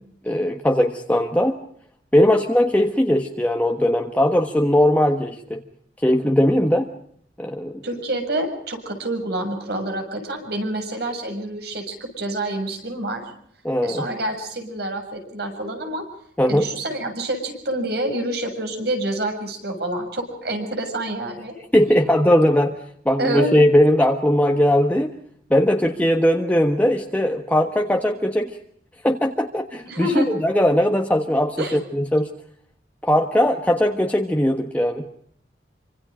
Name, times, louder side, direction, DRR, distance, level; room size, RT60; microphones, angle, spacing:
voice 1, 0.2-1.6 2.1-5.6 6.0-6.9 7.4-7.8 13.6-14.1 16.4-16.6 21.7-22.7 23.0-25.1 25.5-28.6 29.0-32.3 33.0-35.1, equal, 10° left, 3 dB, 1.4 m, -19 dB
voice 2, 7.8-13.2 13.8-16.1 16.4-21.5 23.2-23.5 29.8-30.3 31.6-31.8, right 1 dB, 65° right, 6 dB, 7.2 m, -27 dB
27.5 x 26.0 x 5.0 m, 0.65 s
head